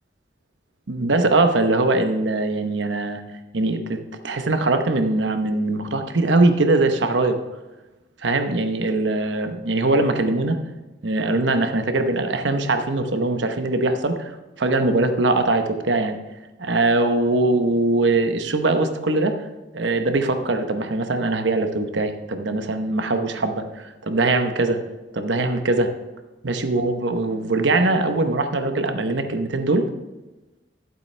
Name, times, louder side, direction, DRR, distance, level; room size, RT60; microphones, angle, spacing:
voice 1, 0.9-3.2 3.5-7.4 8.2-10.6 11.0-14.3 14.6-16.2 16.6-19.4 19.7-24.8 25.1-25.9 26.4-29.9, right 2 dB, 85° right, 7 dB, 0.9 m, -21 dB
12.0 x 7.7 x 3.3 m, 1.1 s
head